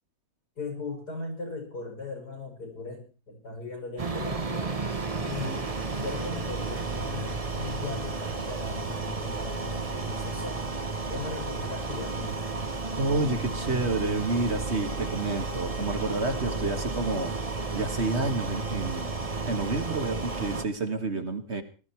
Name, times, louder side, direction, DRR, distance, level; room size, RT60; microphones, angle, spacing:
voice 1, 0.6-4.7 5.2-5.7 6.0-10.7 11.1-12.4, left 3 dB, 90° left, 2 dB, 7.6 m, -38 dB
sound 1, 4.0-20.6, right 3 dB, 25° right, 1.1 m, -32 dB
voice 2, 13.0-17.4 17.7-21.6, right 3 dB, 45° right, 7 dB, 1.9 m, -29 dB
19.0 x 13.5 x 4.6 m, 0.36 s
omnidirectional pair, 1.7 m